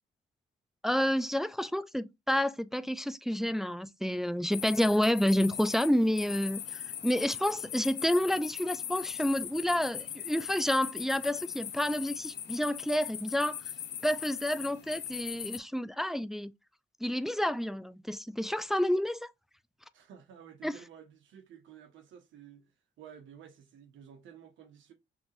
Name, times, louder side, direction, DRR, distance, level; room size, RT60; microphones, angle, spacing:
voice 1, 0.8-13.6 14.0-16.5 17.0-19.3 20.6-20.7, equal, ahead, 0.3 m, -29 dB
sound 1, 4.5-15.6, left 9 dB, 60° left, 0.8 m, -40 dB
voice 2, 19.9-22.7 23.0-24.9, right 8 dB, 75° right, 1.4 m, -52 dB
5.7 x 3.0 x 2.6 m
cardioid pair, 90°, 20 cm